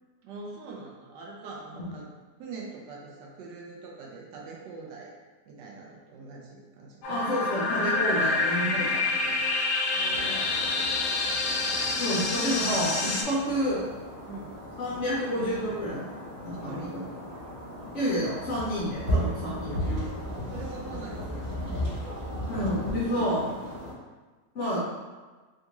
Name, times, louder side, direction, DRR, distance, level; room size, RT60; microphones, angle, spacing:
voice 1, 0.2-2.1 2.4-5.1 5.5-7.2 9.9-10.9 13.4-13.5 14.3-14.6 16.6-17.0 20.3-21.9 22.6-23.6, right 3 dB, 85° right, -2 dB, 1.3 m, -43 dB
sound 1, 7.0-13.2, left 3 dB, 75° left, 1.1 m, -27 dB
voice 2, 7.1-9.4 11.9-13.8 14.8-16.1 16.4-17.0 17.9-19.9 22.5-23.4 24.5-24.8, equal, 60° left, -7 dB, 0.8 m, -29 dB
sound 2, 10.1-23.9, equal, 35° right, 1.0 m, -35 dB
3.5 x 2.5 x 2.9 m, 1.3 s
omnidirectional pair, 1.8 m